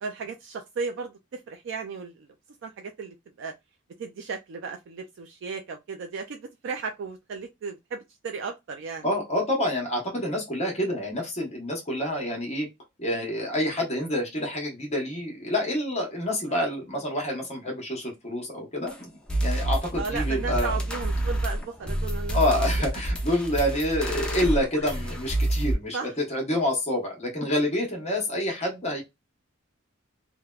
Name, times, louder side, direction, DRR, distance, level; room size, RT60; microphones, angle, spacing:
voice 1, 0.0-2.3 2.6-3.5 4.0-9.0 16.5-16.7 20.0-22.7 25.9-26.1, right 5 dB, 60° right, 0.3 m, -35 dB
voice 2, 9.0-12.7 13.0-19.1 19.4-20.8 22.3-29.0, left 1 dB, 30° left, 0.9 m, -27 dB
sound 1, 18.9-19.0 19.3-25.7, right 1 dB, 5° left, 0.6 m, -28 dB
3.2 x 2.1 x 2.3 m
head